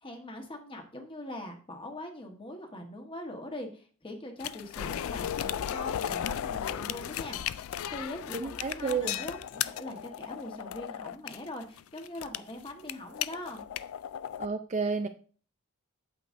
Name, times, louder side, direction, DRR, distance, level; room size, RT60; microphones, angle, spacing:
voice 1, 0.0-7.4 7.9-13.6, left 1 dB, 25° left, 4 dB, 1.3 m, -42 dB
sound 1, 4.4-14.5, left 10 dB, 75° left, 0.3 m, -35 dB
voice 2, 8.3-9.2 14.4-15.1, right 4 dB, 35° right, 7 dB, 0.4 m, -31 dB
8.7 x 7.6 x 2.6 m, 0.40 s
head